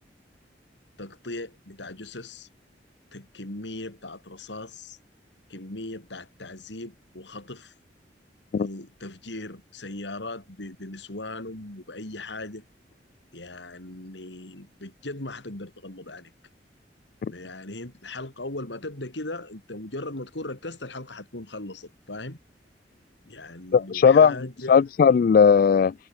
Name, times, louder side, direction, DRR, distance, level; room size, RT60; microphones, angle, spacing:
voice 1, 1.0-2.5 3.1-5.0 5.5-7.7 8.6-12.6 13.3-16.3 17.3-22.4 23.3-24.8, left 2 dB, 85° left, 3.6 m, -38 dB
voice 2, 23.7-25.9, left 6 dB, 55° left, 0.3 m, -18 dB
head